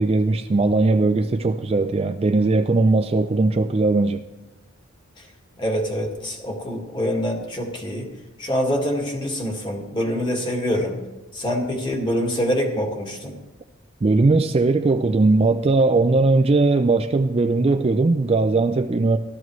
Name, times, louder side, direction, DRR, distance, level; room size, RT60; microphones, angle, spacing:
voice 1, 0.0-4.2 14.0-19.2, right 3 dB, 30° right, 0.4 m, -19 dB
voice 2, 5.6-8.1 8.4-11.0 11.3-13.4, equal, 20° left, 1.9 m, -25 dB
15.0 x 12.5 x 3.1 m
head